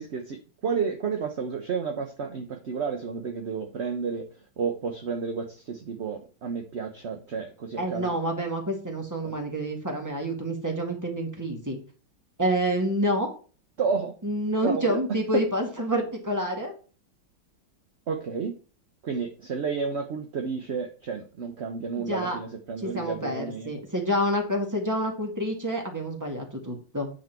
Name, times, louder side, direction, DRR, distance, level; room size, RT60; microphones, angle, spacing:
voice 1, 0.0-4.3 4.6-8.1 9.2-9.3 13.8-14.1 14.6-15.0 15.3-15.4 18.1-18.6 19.0-23.7, right 5 dB, 50° right, 5 dB, 0.9 m, -31 dB
voice 2, 7.8-11.8 12.4-13.3 14.2-16.7 22.0-22.4 22.8-27.1, equal, 10° right, 2 dB, 1.9 m, -28 dB
9.0 x 5.2 x 4.5 m, 0.38 s
omnidirectional pair, 2.0 m